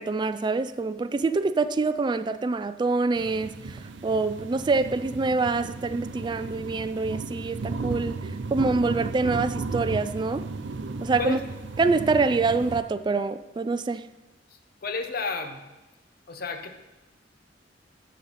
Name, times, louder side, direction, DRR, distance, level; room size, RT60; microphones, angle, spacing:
voice 1, 0.0-10.4 11.0-11.4 11.8-14.1, right 3 dB, 25° right, 11 dB, 0.3 m, -26 dB
sound 1, 3.2-12.8, right 3 dB, 80° right, 0.6 m, -35 dB
voice 2, 14.8-15.6 16.3-16.8, left 4 dB, 55° left, 7 dB, 0.8 m, -31 dB
13.5 x 6.4 x 4.1 m, 1.1 s
head